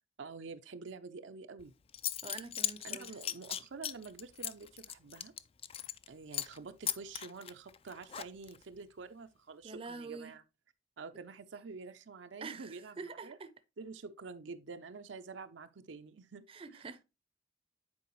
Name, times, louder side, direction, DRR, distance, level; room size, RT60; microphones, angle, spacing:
voice 1, 0.2-1.7 2.8-5.3 6.1-10.4 11.0-13.4 13.8-16.4 16.7-16.8, right 4 dB, 75° right, 0.6 m, -48 dB
Zipper (clothing) / Coin (dropping), 1.6-1.7 1.9-6.1 6.3-6.6 6.9-8.6, left 10 dB, 30° left, 0.3 m, -38 dB
voice 2, 2.2-3.2 9.6-10.3 12.4-13.5 16.5-17.0, right 4 dB, 30° right, 0.6 m, -46 dB
9.5 x 4.6 x 3.0 m
head